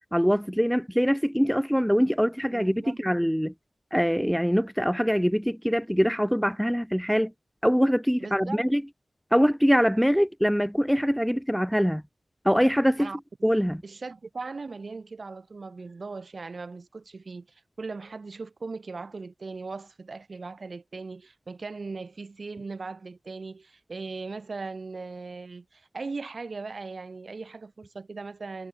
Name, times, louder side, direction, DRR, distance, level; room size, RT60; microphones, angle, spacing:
voice 1, 0.1-3.5 3.9-7.3 7.6-8.8 9.3-12.0 12.4-13.1 13.4-13.8, equal, ahead, 0.7 m, -23 dB
voice 2, 2.5-3.0 8.2-8.7 13.0-13.2 13.8-28.7, right 4 dB, 70° right, 2.2 m, -39 dB
cardioid pair, 45°, 0 cm